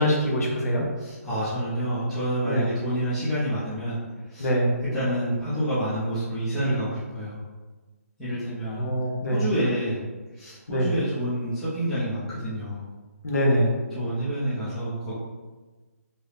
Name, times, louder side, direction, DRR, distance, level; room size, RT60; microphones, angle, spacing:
voice 1, 0.0-0.8 2.4-2.7 4.4-4.7 8.6-9.4 10.7-10.9 13.2-13.7, equal, 75° left, -2 dB, 1.0 m, -23 dB
voice 2, 1.0-4.0 4.3-4.5 4.9-7.4 8.2-8.9 9.3-10.0 10.3-12.9 13.9-15.1, right 1 dB, ahead, -13 dB, 0.4 m, -28 dB
2.8 x 2.7 x 3.2 m, 1.3 s
hypercardioid pair, 180°, 8 cm